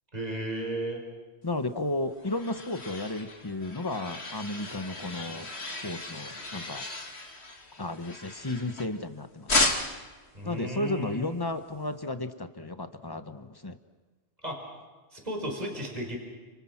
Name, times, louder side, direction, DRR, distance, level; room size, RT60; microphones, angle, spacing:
voice 1, 0.1-1.0 10.3-11.3 14.4-14.6 15.1-16.2, equal, 35° right, 2 dB, 5.0 m, -34 dB
voice 2, 1.4-6.9 7.8-9.7 10.4-13.8, left 2 dB, 20° left, 9 dB, 1.3 m, -33 dB
sound 1, 1.8-9.1 9.5-10.1, left 2 dB, 65° left, 2.6 m, -34 dB
30.0 x 27.5 x 6.1 m, 1.4 s
omnidirectional pair, 1.2 m